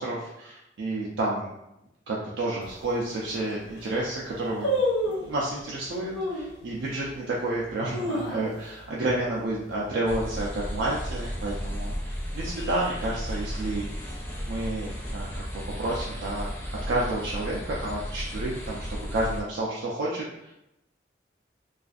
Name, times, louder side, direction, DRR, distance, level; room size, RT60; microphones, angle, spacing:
voice 1, 0.0-1.5 2.1-4.8 5.1-14.1 14.5-15.5 15.8-16.5 16.9-20.5, right 2 dB, 80° right, -4 dB, 0.4 m, -30 dB
sound 1, 2.6-2.7 3.3-3.4 3.6-4.0 4.6-5.4 6.1-6.5 7.1-7.2 7.7-8.8 9.1-9.2 9.5-9.9 10.3-10.7 11.3-12.1 12.3-12.4, equal, 90° left, 0.6 m, -29 dB
sound 2, 10.1-19.4, equal, 10° left, 0.4 m, -34 dB
2.5 x 2.4 x 2.4 m, 0.86 s
head